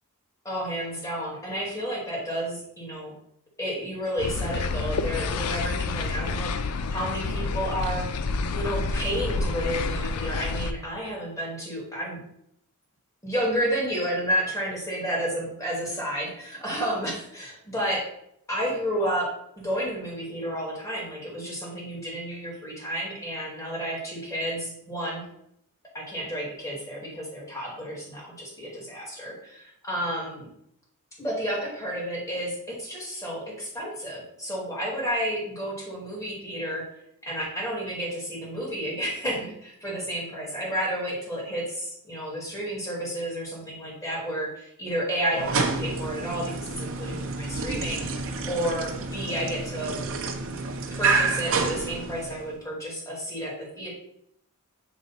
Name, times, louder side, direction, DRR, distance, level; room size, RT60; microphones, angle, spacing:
voice 1, 0.4-3.1 3.6-8.3 8.5-12.2 13.2-18.1 18.5-25.2 25.9-30.5 31.2-36.9 37.2-48.1 48.4-50.0 50.9-53.9, equal, 15° left, -5 dB, 2.2 m, -31 dB
sound 1, 4.2-10.7, left 3 dB, 90° left, 0.5 m, -29 dB
sound 2, 45.3-52.5, right 4 dB, 60° right, 0.7 m, -29 dB
7.6 x 3.1 x 4.0 m, 0.74 s
head